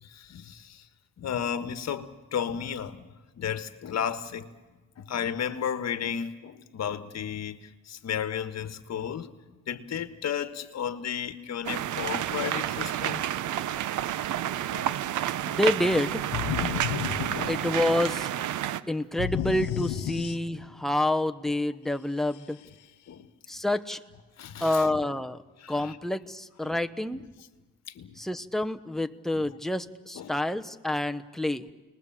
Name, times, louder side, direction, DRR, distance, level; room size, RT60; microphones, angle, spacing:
voice 1, 0.0-0.8 1.2-3.1 3.4-4.5 5.0-9.3 9.7-13.2 14.7-15.3 16.9-17.7 18.7-18.8 23.1-23.3 24.4-25.0 25.6-26.0 26.6-26.8 27.1-27.3 27.9-28.2 29.3-29.6 30.1-30.4, left 8 dB, 60° left, 1.5 m, -34 dB
sound 1, 11.6-18.8, right 12 dB, 75° right, 0.9 m, -30 dB
voice 2, 15.5-16.2 17.5-18.3 18.9-22.6 23.5-24.0 24.6-25.4 25.7-27.2 28.2-31.6, left 1 dB, ahead, 1.0 m, -28 dB
sound 2, 16.3-18.1 19.2-20.8, left 10 dB, 80° left, 1.0 m, -32 dB
30.0 x 20.5 x 7.4 m
cardioid pair, 90°, 30 cm